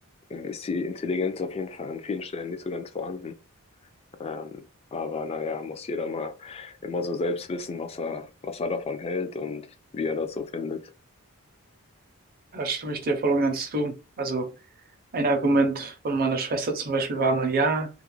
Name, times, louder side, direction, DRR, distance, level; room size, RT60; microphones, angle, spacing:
voice 1, 0.3-3.3 4.2-9.6 9.9-10.9, left 4 dB, 25° left, 0.3 m, -31 dB
voice 2, 12.5-14.5 15.1-17.9, right 3 dB, 40° right, 0.5 m, -25 dB
2.3 x 2.0 x 3.0 m
head